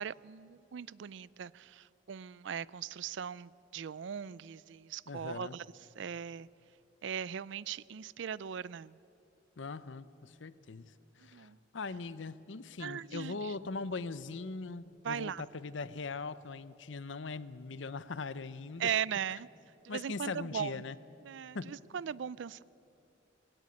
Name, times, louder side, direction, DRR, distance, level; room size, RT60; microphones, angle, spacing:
voice 1, 0.0-5.6 6.0-6.5 7.0-9.0 11.3-11.6 12.8-13.5 15.0-15.4 18.8-19.5 19.8-20.8 21.3-22.6, right 8 dB, 70° right, 0.4 m, -39 dB
voice 2, 5.1-5.6 9.6-18.9 19.9-21.0 21.5-21.7, left 4 dB, 75° left, 0.7 m, -41 dB
19.5 x 17.0 x 9.7 m
head